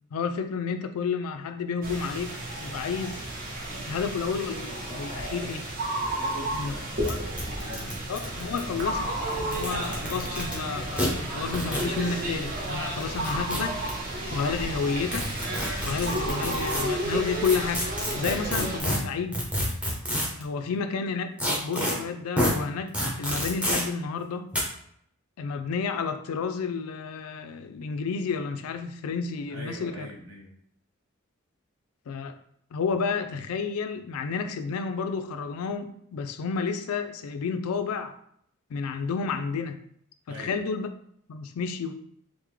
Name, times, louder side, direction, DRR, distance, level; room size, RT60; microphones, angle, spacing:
voice 1, 0.1-2.3 2.6-3.2 3.9-5.7 6.5-6.7 7.1-7.2 8.1-9.1 9.4-13.8 14.3-15.3 15.8-17.8 18.1-19.4 20.4-22.9 23.2-24.5 25.4-30.1 32.1-32.3 32.7-38.2 38.7-39.8 40.3-40.9 41.3-42.0, left 5 dB, 85° left, 9 dB, 0.4 m, -31 dB
sound 1, 1.8-18.8, right 1 dB, 40° right, 0.7 m, -32 dB
voice 2, 6.2-7.9 20.6-20.8 29.5-30.5 40.3-40.5, equal, 75° right, -3 dB, 1.0 m, -42 dB
sound 2, 6.3-6.4 6.5-6.6 7.0-7.1 7.4-8.8 9.4-10.5 11.0-11.1 11.5-11.9 13.0-13.9 15.1-16.8 17.4-20.4 21.4-21.9 22.4-22.5 22.9-23.8 24.5-24.6, equal, 5° right, 0.6 m, -28 dB
3.4 x 2.1 x 3.1 m, 0.69 s
head